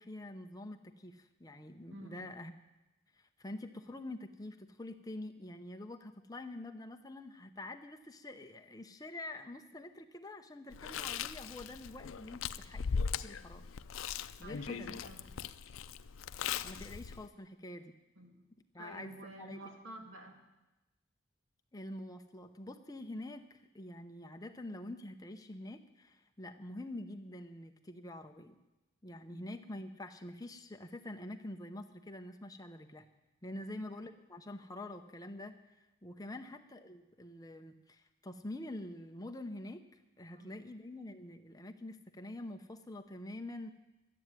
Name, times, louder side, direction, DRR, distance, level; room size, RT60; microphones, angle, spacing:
voice 1, 0.0-2.5 3.2-13.7 14.4-14.9 16.6-17.9 18.7-19.6 21.7-28.6 29.0-33.1 33.4-43.7, left 1 dB, 20° left, 7 dB, 0.8 m, -46 dB
voice 2, 1.9-2.4 14.4-15.3 18.2-18.5 18.8-20.4 29.3-29.5 33.6-33.8 36.3-36.4 40.3-40.6, right 1 dB, 80° right, 3 dB, 2.3 m, -51 dB
Chewing mastication, 10.7-17.3, left 6 dB, 90° left, 0.5 m, -39 dB
12.5 x 9.4 x 9.5 m, 1.0 s
head